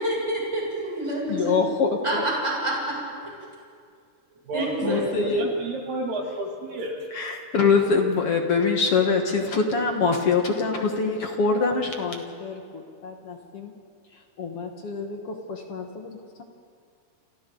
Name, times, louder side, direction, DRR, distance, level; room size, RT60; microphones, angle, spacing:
voice 1, 0.0-1.6 2.0-3.0 4.5-5.1, right 1 dB, 10° right, -5 dB, 6.4 m, -27 dB
voice 2, 1.3-2.3 4.8-5.5 7.1-13.7 14.4-16.4, left 4 dB, 55° left, 3 dB, 1.9 m, -25 dB
voice 3, 4.3-5.1 5.4-7.0, right 1 dB, 80° right, -1 dB, 4.6 m, -31 dB
29.5 x 28.0 x 3.9 m, 2.2 s
omnidirectional pair, 3.9 m